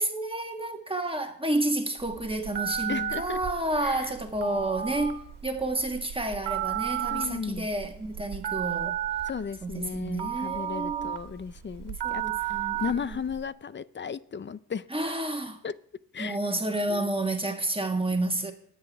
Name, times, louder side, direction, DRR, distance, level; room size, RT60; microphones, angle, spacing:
voice 1, 0.0-9.0 9.6-11.2 12.0-13.2 14.9-15.6 16.2-18.5, right 2 dB, 10° right, 1.6 m, -30 dB
Telephone, 2.0-13.4, right 10 dB, 70° right, 1.7 m, -33 dB
voice 2, 2.9-3.4 3.8-4.1 7.1-7.7 9.3-14.9 15.6-15.7 16.1-16.4 16.9-17.0, left 6 dB, 25° left, 0.5 m, -35 dB
21.0 x 7.9 x 3.5 m
cardioid pair, 80°, 43 cm